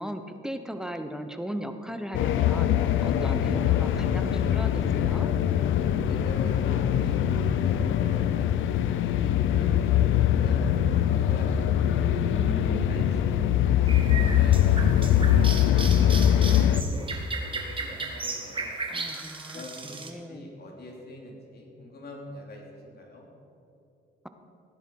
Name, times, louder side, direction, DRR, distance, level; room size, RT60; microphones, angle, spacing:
voice 1, 0.0-5.3 11.8-13.1 18.9-20.5, equal, 5° right, 7 dB, 0.9 m, -37 dB
sound 1, 2.1-16.8, left 10 dB, 80° left, 0.6 m, -23 dB
voice 2, 6.1-7.3 7.6-11.7 12.5-16.3 16.7-18.7 19.5-20.0 20.3-23.3, left 1 dB, 55° left, -1 dB, 3.2 m, -44 dB
sound 2, 13.9-20.1, right 3 dB, 25° right, 1.6 m, -36 dB
16.0 x 10.0 x 4.7 m, 2.7 s
cardioid pair, 90°, 20 cm